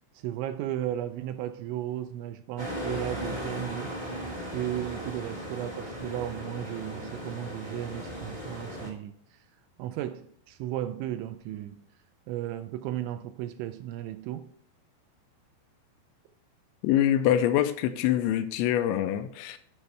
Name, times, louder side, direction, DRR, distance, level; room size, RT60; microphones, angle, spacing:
voice 1, 0.1-3.9 4.5-9.4 9.8-11.8 12.3-14.5, right 12 dB, 85° right, 2.7 m, -35 dB
sound 1, 2.6-8.9, equal, 30° right, 0.5 m, -37 dB
voice 2, 16.8-19.6, left 11 dB, 85° left, 2.8 m, -25 dB
12.0 x 6.4 x 3.3 m
omnidirectional pair, 5.6 m